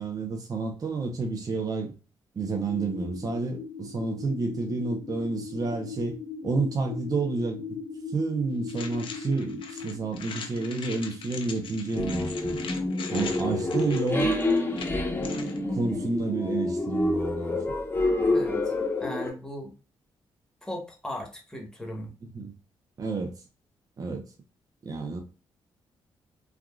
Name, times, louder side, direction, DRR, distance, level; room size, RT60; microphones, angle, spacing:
voice 1, 0.0-1.9 2.3-6.2 6.4-7.7 8.1-12.6 13.1-14.3 15.7-17.6 22.3-22.5 23.0-23.3 24.0-24.2 24.8-25.2, right 3 dB, 40° right, 0.6 m, -30 dB
sound 1, 2.4-17.4, left 5 dB, 80° left, 1.0 m, -41 dB
sound 2, 8.7-15.6, left 6 dB, 65° left, 0.6 m, -41 dB
sound 3, 12.0-19.3, left 2 dB, 20° left, 0.9 m, -28 dB
voice 2, 18.3-18.7 19.0-19.7 20.6-22.1, left 1 dB, 5° left, 1.1 m, -38 dB
3.4 x 2.4 x 2.3 m
cardioid pair, 70°, 10 cm